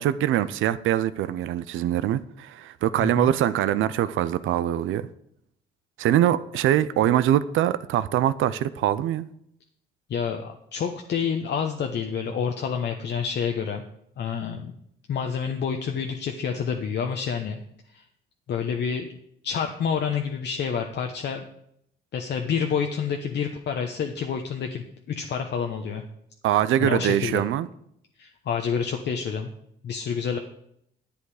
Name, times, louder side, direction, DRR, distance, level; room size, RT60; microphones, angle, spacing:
voice 1, 0.0-5.1 6.0-9.3 26.4-27.7, right 12 dB, 80° right, 0.5 m, -23 dB
voice 2, 3.0-3.3 10.1-13.8 14.2-14.7 15.1-17.6 17.9-18.0 18.5-19.1 19.4-21.5 22.1-26.0 26.8-27.4 28.2-29.5 29.8-30.4, left 6 dB, 60° left, 0.9 m, -28 dB
10.0 x 8.2 x 4.9 m
cardioid pair, 90°, 20 cm